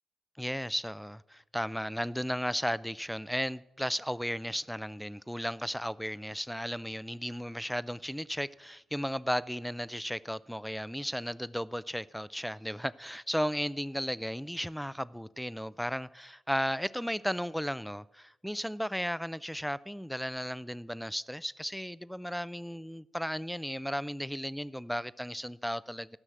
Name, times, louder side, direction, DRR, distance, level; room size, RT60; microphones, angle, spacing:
voice 1, 0.4-26.2, equal, ahead, 0.4 m, -35 dB
13.5 x 6.2 x 7.9 m
cardioid pair, 70°, 0 cm